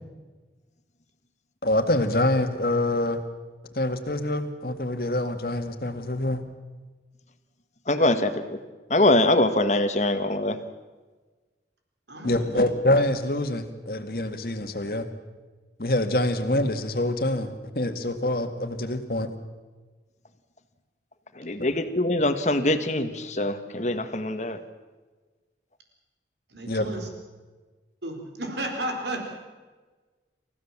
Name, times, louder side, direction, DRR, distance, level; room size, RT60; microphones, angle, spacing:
voice 1, 1.6-3.2 3.7-6.4 12.2-15.1 15.8-19.3 21.6-21.7 26.7-26.9, left 1 dB, 55° left, 7 dB, 2.0 m, -25 dB
voice 2, 7.9-8.6 8.9-10.6 21.4-24.6, left 1 dB, 40° left, 9 dB, 1.6 m, -23 dB
voice 3, 12.1-12.5 26.5-27.1 28.0-29.2, right 1 dB, 80° right, 3 dB, 4.3 m, -33 dB
28.5 x 15.5 x 7.4 m, 1.3 s
head